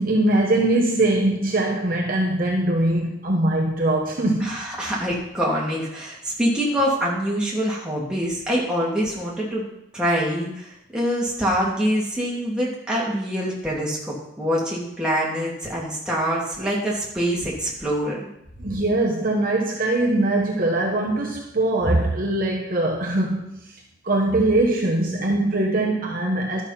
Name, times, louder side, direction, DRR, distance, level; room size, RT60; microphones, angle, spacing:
voice 1, 0.0-4.6 18.6-23.8 24.0-26.6, right 2 dB, 45° right, 1.3 m, -22 dB
voice 2, 4.4-9.6 9.9-18.2, equal, 5° right, 2.7 m, -25 dB
12.0 x 6.2 x 5.8 m
head